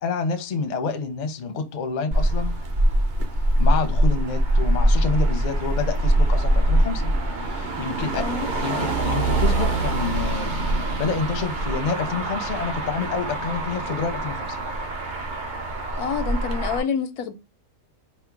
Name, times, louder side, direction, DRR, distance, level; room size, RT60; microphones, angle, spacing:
voice 1, 0.0-2.6 3.6-7.1 7.5-8.3 8.6-10.6 11.0-14.6, left 5 dB, 50° left, 0.5 m, -28 dB
Motor vehicle (road), 2.1-16.8, right 1 dB, 45° right, 0.7 m, -23 dB
voice 2, 8.2-8.5 16.0-17.3, left 6 dB, 90° left, 1.2 m, -27 dB
4.3 x 2.1 x 4.5 m
omnidirectional pair, 1.5 m